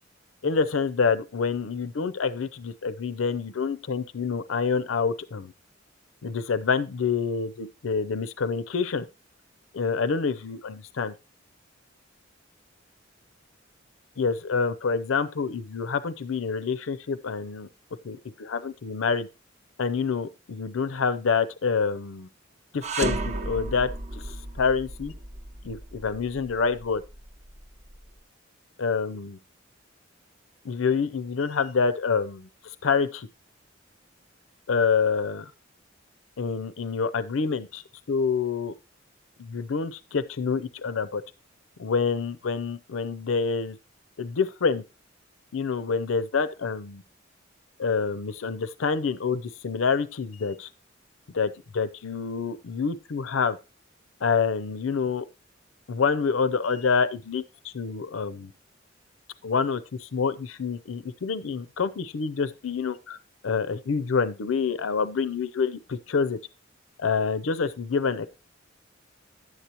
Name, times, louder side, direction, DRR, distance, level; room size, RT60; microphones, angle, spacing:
voice 1, 0.4-5.5 6.2-9.1 9.7-11.1 14.2-17.7 18.0-19.3 19.8-22.3 22.7-25.1 25.6-27.0 28.8-29.4 30.6-33.3 34.7-35.5 36.4-37.8 38.1-38.7 39.4-41.2 41.8-43.8 44.2-44.8 45.5-47.0 47.8-50.7 51.3-53.6 54.2-55.2 55.9-58.5 59.4-63.2 63.4-66.4 67.0-68.3, left 5 dB, 85° left, 0.5 m, -27 dB
sound 1, 22.8-28.0, right 2 dB, 35° right, 0.7 m, -34 dB
11.0 x 8.1 x 2.9 m
head